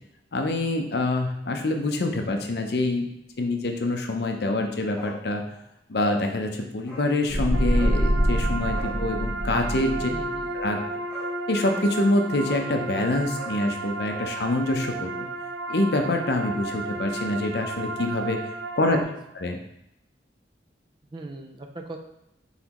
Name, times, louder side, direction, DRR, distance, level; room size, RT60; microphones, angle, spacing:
voice 1, 0.3-3.1 3.4-5.5 5.9-10.1 10.5-10.8 11.5-15.3 15.7-18.4 18.8-19.0 19.3-19.6, left 2 dB, 65° left, 4 dB, 0.6 m, -26 dB
Bark, 4.9-5.2 5.5-5.6 5.9-6.2 6.8-7.1 7.7-8.0 8.7-9.0 10.6-10.7 11.1-11.3 11.6-11.9 12.4-12.7 13.3-14.3 14.6-14.7, right 1 dB, 5° left, 1.4 m, -40 dB
sound 1, 7.3-10.4, equal, 10° right, 1.2 m, -25 dB
sound 2, 7.5-19.0, right 3 dB, 90° right, 0.5 m, -33 dB
voice 2, 10.1-10.5 21.1-22.0, right 2 dB, 25° right, 4 dB, 0.4 m, -39 dB
4.0 x 3.9 x 2.9 m, 0.82 s
head